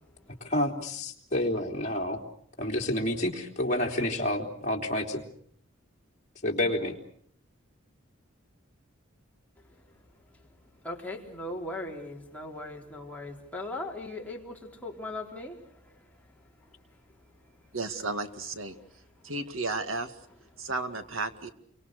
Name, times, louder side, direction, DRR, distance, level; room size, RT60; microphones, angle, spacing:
voice 1, 0.4-2.2 2.6-5.2 6.4-7.0, left 1 dB, 40° left, -1 dB, 3.5 m, -29 dB
voice 2, 10.8-16.0 18.7-18.9, left 2 dB, 10° left, -1 dB, 4.0 m, -39 dB
voice 3, 17.7-18.7 19.2-20.2 20.6-21.5, right 3 dB, 85° right, 9 dB, 2.2 m, -33 dB
30.0 x 24.5 x 6.6 m, 0.62 s
head